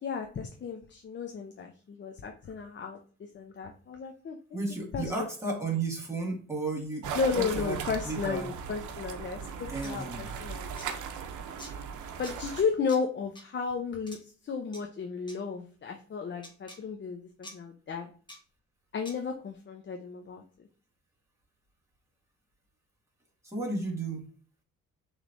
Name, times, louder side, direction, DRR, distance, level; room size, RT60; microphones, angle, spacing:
voice 1, 0.0-3.0 3.3-4.4 4.9-5.1 7.1-9.4 9.8-10.7 12.2-18.1 18.9-20.4, left 5 dB, 40° left, 3 dB, 0.7 m, -33 dB
voice 2, 4.5-7.1 7.4-8.5 9.6-10.3 23.4-24.3, right 3 dB, 10° right, -3 dB, 2.0 m, -33 dB
sound 1, 7.0-12.6, right 6 dB, 75° right, 0.7 m, -38 dB
sound 2, 9.8-9.9 10.7-10.9 11.6-11.7 12.2-12.4 12.9-13.0 13.4-13.5 14.1-14.2 14.7-14.8 15.3-15.4 16.4-16.8 17.4-17.6 18.3-18.4 19.1-19.2, left 1 dB, 15° left, 1.5 m, -46 dB
6.3 x 3.2 x 2.6 m, 0.41 s
cardioid pair, 90°, 30 cm